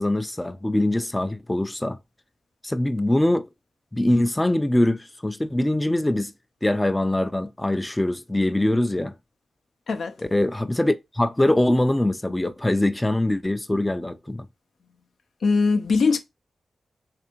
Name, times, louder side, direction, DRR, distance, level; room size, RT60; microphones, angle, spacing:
voice 1, 0.0-2.0 2.6-3.5 3.9-6.3 6.6-9.1 10.3-14.5, left 1 dB, 15° left, 0.4 m, -23 dB
voice 2, 15.4-16.2, left 4 dB, 80° left, 0.5 m, -20 dB
3.4 x 3.3 x 2.9 m
cardioid pair, 55°, 0 cm